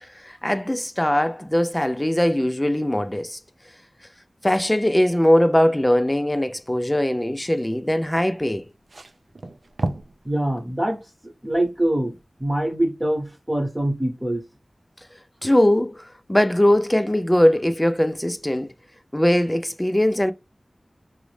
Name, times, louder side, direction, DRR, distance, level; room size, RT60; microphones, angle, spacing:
voice 1, 0.0-3.4 4.4-8.7 15.4-18.7 19.1-20.3, left 1 dB, 15° left, 0.3 m, -20 dB
sound 1, 8.5-10.2 10.6-10.7 11.9-12.0, right 2 dB, 80° right, 0.3 m, -31 dB
voice 2, 10.2-14.4, right 1 dB, 20° right, 0.9 m, -24 dB
3.8 x 2.0 x 3.1 m
wide cardioid pair, 70°, 0 cm